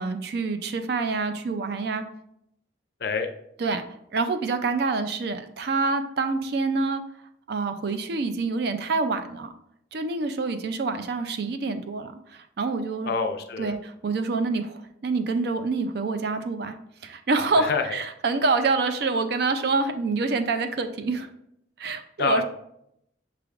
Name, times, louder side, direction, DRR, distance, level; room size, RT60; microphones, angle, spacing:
voice 1, 0.0-2.0 3.6-3.8 4.1-7.0 7.5-9.5 9.9-13.1 13.6-16.8 17.0-21.3 21.8-22.4, right 3 dB, 55° right, 9 dB, 0.4 m, -26 dB
voice 2, 13.0-13.7 17.6-18.0 22.2-22.4, left 5 dB, 55° left, 6 dB, 0.4 m, -27 dB
5.9 x 3.3 x 2.4 m, 0.75 s
head